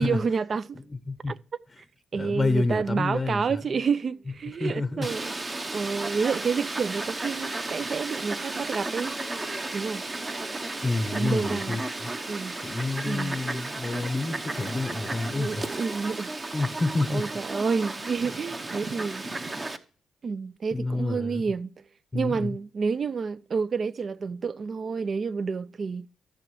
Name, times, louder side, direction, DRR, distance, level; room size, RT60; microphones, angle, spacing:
voice 1, 0.0-0.8 1.3-1.4 2.1-5.3 5.7-9.2 9.7-10.0 11.1-11.8 12.3-12.5 13.1-13.4 15.3-16.3 17.1-19.2 20.2-21.7 22.1-26.1, right 5 dB, 45° right, 0.4 m, -29 dB
voice 2, 0.9-1.4 2.1-3.6 4.6-5.1 10.8-12.1 12.6-15.7 16.5-17.3 20.7-21.4 22.1-22.6, left 3 dB, 20° left, 0.7 m, -29 dB
Fowl, 5.0-19.8, right 2 dB, 25° right, 0.8 m, -34 dB
14.0 x 6.7 x 3.1 m
cardioid pair, 90°, 0 cm